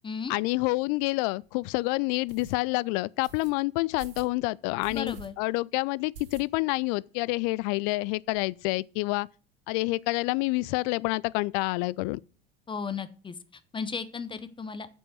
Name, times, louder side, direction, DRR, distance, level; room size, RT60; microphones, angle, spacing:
voice 1, 0.3-9.3 9.7-12.2, left 23 dB, 45° left, 0.4 m, -28 dB
sound 1, 0.9-1.0 1.4-1.5 2.3-2.5 3.2-3.5 4.0-4.3 4.8-5.3 5.6-5.7 6.1-6.8 7.1-7.2 7.5-7.6 7.8-8.5, right 3 dB, 70° right, 2.4 m, -47 dB
voice 2, 4.9-5.3 12.7-13.3 13.7-14.9, left 5 dB, 15° left, 0.8 m, -35 dB
7.7 x 6.3 x 7.9 m
figure-of-eight pair, 75°, 29 cm